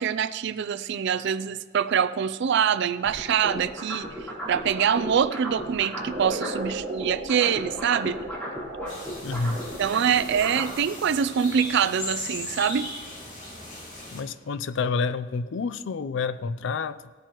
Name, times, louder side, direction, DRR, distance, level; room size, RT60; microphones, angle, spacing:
voice 1, 0.0-4.1 4.5-8.2 9.8-12.9, right 8 dB, 60° right, 11 dB, 0.4 m, -24 dB
sound 1, 3.0-6.7 7.0-10.7, right 1 dB, 10° left, 3.4 m, -35 dB
sound 2, 6.1-10.1, right 1 dB, 30° right, 3.7 m, -37 dB
sound 3, 8.9-14.2, left 2 dB, 40° left, 2.6 m, -38 dB
voice 2, 9.2-9.6 14.1-17.0, left 4 dB, 70° left, 14 dB, 0.4 m, -28 dB
16.5 x 9.1 x 3.0 m, 1.4 s
head